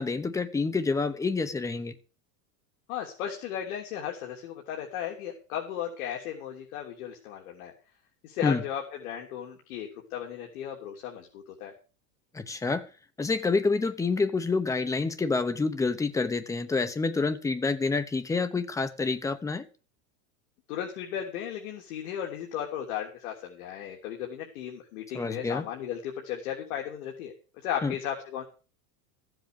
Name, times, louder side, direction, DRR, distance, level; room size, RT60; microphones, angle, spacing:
voice 1, 0.0-1.9 8.4-8.6 12.3-12.9 13.2-19.7 25.1-25.7 27.8-27.9, left 4 dB, 5° left, 0.8 m, -28 dB
voice 2, 2.9-7.7 8.2-11.7 20.7-27.3 27.6-28.4, left 9 dB, 70° left, 3.3 m, -35 dB
15.0 x 7.9 x 6.8 m
supercardioid pair, 160°, 44 cm